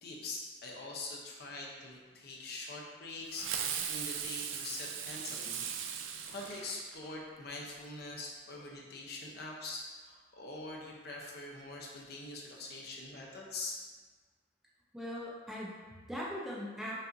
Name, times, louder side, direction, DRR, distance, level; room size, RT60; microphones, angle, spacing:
voice 1, 0.0-5.6 6.3-13.8, left 2 dB, 55° left, -2 dB, 0.6 m, -44 dB
Fireworks, 3.3-7.2, right 8 dB, 85° right, 0.3 m, -38 dB
voice 2, 14.9-17.0, equal, ahead, -6 dB, 0.5 m, -40 dB
5.3 x 2.5 x 2.6 m, 1.4 s
head